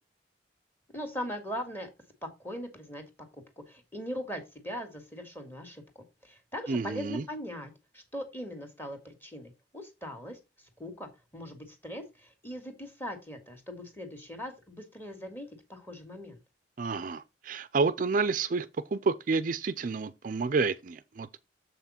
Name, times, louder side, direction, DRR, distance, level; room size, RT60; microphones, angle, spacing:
voice 1, 0.9-1.9 2.2-3.0 3.7-10.4 10.8-16.4, equal, 10° left, 1.9 m, -40 dB
voice 2, 6.7-7.2 16.8-21.3, right 4 dB, 45° right, 0.4 m, -29 dB
7.3 x 5.9 x 4.2 m
head